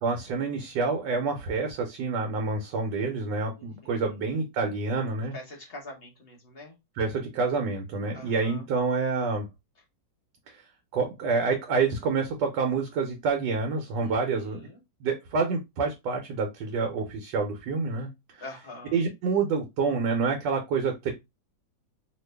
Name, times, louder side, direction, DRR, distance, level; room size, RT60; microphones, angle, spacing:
voice 1, 0.0-5.3 7.0-9.5 10.5-10.6 10.9-14.6 15.0-18.4 18.9-21.1, right 4 dB, 75° right, 3 dB, 1.3 m, -28 dB
voice 2, 3.6-4.2 5.3-6.8 8.1-8.7 13.9-14.8 18.4-19.1, left 2 dB, 40° left, 1 dB, 1.0 m, -45 dB
2.9 x 2.5 x 3.2 m, 0.21 s
omnidirectional pair, 2.0 m